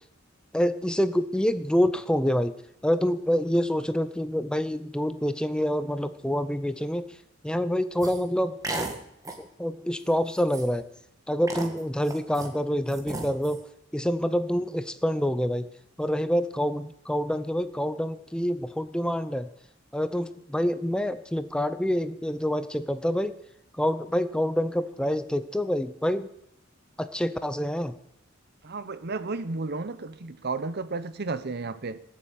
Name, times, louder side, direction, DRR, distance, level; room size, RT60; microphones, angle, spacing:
voice 1, 0.5-2.5 2.8-7.2 7.4-8.6 9.4-10.8 11.3-13.6 13.9-15.7 16.0-19.5 19.9-23.4 23.7-26.3 27.0-27.9, equal, 5° left, 0.6 m, -27 dB
sound 1, 8.0-8.2 8.6-9.0 9.2-9.5 10.0-10.1 10.4-10.8 11.5-12.5 12.9-13.6, right 2 dB, 15° right, 1.8 m, -34 dB
voice 2, 28.6-32.0, right 3 dB, 55° right, 0.8 m, -33 dB
18.5 x 7.6 x 8.6 m
head